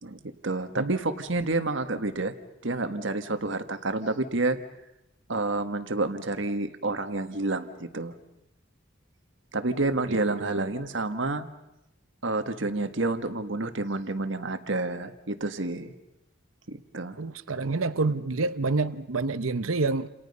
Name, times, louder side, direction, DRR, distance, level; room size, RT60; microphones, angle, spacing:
voice 1, 0.0-2.3 2.6-4.6 5.3-8.1 9.5-11.5 12.2-15.9 16.7-17.2, right 2 dB, 60° right, 9 dB, 1.6 m, -29 dB
voice 2, 10.1-10.7 17.2-20.1, right 3 dB, 80° right, 13 dB, 0.9 m, -28 dB
30.0 x 28.5 x 5.5 m, 0.88 s
head